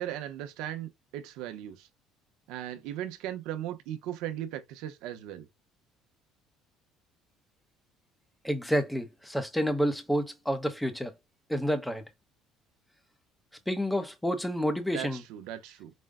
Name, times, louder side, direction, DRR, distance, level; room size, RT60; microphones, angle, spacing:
voice 1, 0.0-1.9 2.5-5.5 14.9-15.9, right 11 dB, 80° right, 0.8 m, -37 dB
voice 2, 8.4-11.1 11.5-12.0 13.7-15.2, equal, ahead, 0.7 m, -29 dB
5.2 x 2.1 x 3.6 m
cardioid pair, 160°, 0 cm